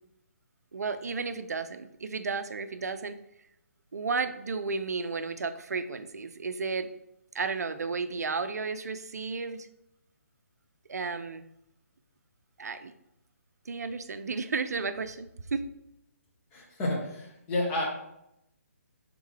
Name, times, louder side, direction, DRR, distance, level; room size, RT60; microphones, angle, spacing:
voice 1, 0.7-3.2 3.9-6.9 7.3-9.7 10.9-11.5 12.6-12.9 13.7-15.6, right 4 dB, 90° right, 10 dB, 0.4 m, -33 dB
voice 2, 16.5-17.8, left 1 dB, 20° left, -2 dB, 0.9 m, -30 dB
3.6 x 3.4 x 3.2 m, 0.81 s
hypercardioid pair, 150°, 8 cm